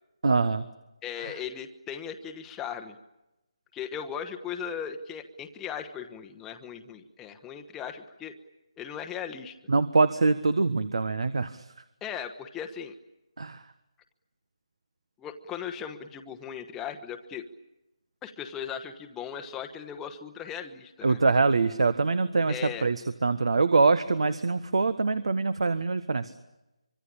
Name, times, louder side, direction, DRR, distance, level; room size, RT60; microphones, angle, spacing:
voice 1, 0.2-0.7 1.2-1.3 9.7-11.7 13.4-13.6 21.0-26.3, right 3 dB, 65° right, 13 dB, 1.5 m, -24 dB
voice 2, 1.0-3.0 3.7-8.4 8.8-9.5 12.0-12.9 15.2-17.5 18.2-21.2 22.5-22.9, left 8 dB, 10° left, 5 dB, 1.1 m, -38 dB
25.0 x 24.0 x 8.8 m, 0.95 s
figure-of-eight pair, 160°, 3 cm